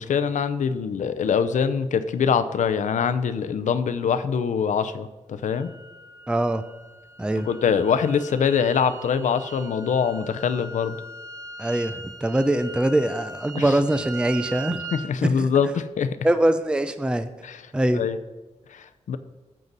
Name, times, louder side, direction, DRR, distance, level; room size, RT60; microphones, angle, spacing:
voice 1, 0.0-5.7 7.5-11.0 13.5-13.7 14.9-16.1 17.4-17.6 17.9-18.2 19.1-19.2, left 6 dB, 85° left, 11 dB, 0.7 m, -23 dB
sound 1, 5.4-15.1, right 3 dB, 25° right, 0.8 m, -40 dB
voice 2, 6.3-6.6 7.2-7.5 11.6-14.8 15.4-15.5 16.2-17.3 17.7-18.1, right 1 dB, 5° right, 10 dB, 0.5 m, -23 dB
13.5 x 7.5 x 4.1 m, 1.1 s
wide cardioid pair, 115°, 13 cm